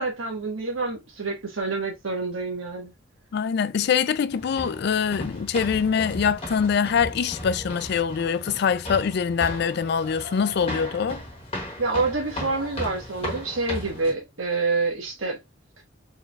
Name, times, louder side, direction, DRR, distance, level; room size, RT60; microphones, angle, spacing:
voice 1, 0.0-2.9 11.8-15.4, right 3 dB, 80° right, 1.4 m, -27 dB
voice 2, 3.3-11.2, left 6 dB, 55° left, 0.3 m, -24 dB
sound 1, 4.3-14.1, left 1 dB, 30° left, 1.1 m, -36 dB
4.6 x 3.3 x 2.3 m
head